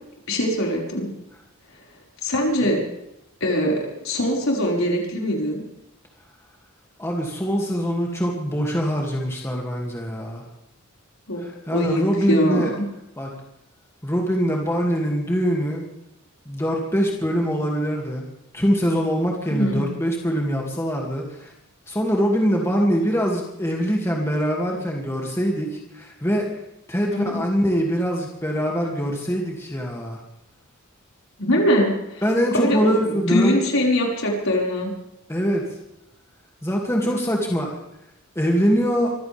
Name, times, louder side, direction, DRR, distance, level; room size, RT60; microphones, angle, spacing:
voice 1, 0.3-1.1 2.2-2.8 3.4-5.6 11.3-11.4 11.7-12.0 12.3-12.7 19.5-19.8 27.1-27.4 31.4-32.2 32.5-34.9, equal, 65° left, -2 dB, 5.5 m, -22 dB
voice 2, 7.0-10.4 11.4-12.7 13.2-13.3 14.0-15.8 16.5-18.2 18.5-21.5 21.9-26.5 26.9-30.2 32.2-33.6 35.3-35.7 36.6-37.8 38.3-39.2, equal, 10° left, -1 dB, 2.5 m, -23 dB
24.5 x 16.0 x 3.6 m, 0.84 s
head